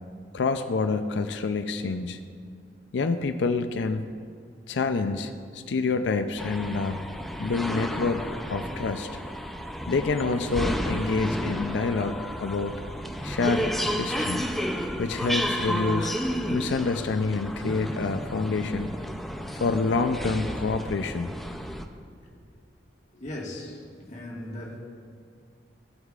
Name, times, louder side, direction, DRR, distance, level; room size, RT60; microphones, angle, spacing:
voice 1, 0.3-2.2 2.9-4.2 4.7-7.0 7.4-9.1 9.9-12.8 13.2-14.4 15.0-16.2 16.5-19.0 19.6-21.3, left 4 dB, 85° left, 8 dB, 0.4 m, -27 dB
sound 1, 6.4-21.9, equal, ahead, 0.4 m, -32 dB
voice 2, 23.1-24.8, left 1 dB, 45° left, -3 dB, 1.6 m, -38 dB
15.5 x 8.0 x 2.4 m, 2.1 s
head